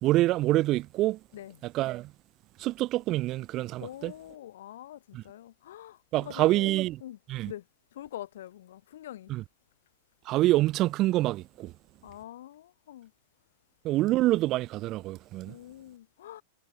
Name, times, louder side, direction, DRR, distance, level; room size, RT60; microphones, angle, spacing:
voice 1, 0.0-1.2 1.6-2.1 2.6-4.1 5.1-5.2 6.1-7.0 7.3-7.5 9.3-9.4 10.3-11.7 13.8-15.6, right 17 dB, 35° right, 0.3 m, -26 dB
voice 2, 3.8-6.7 7.0-7.2 7.5-7.7 7.9-9.3 12.0-13.1 15.4-16.4, left 12 dB, 60° left, 4.1 m, -44 dB
figure-of-eight pair, 90°, 0 cm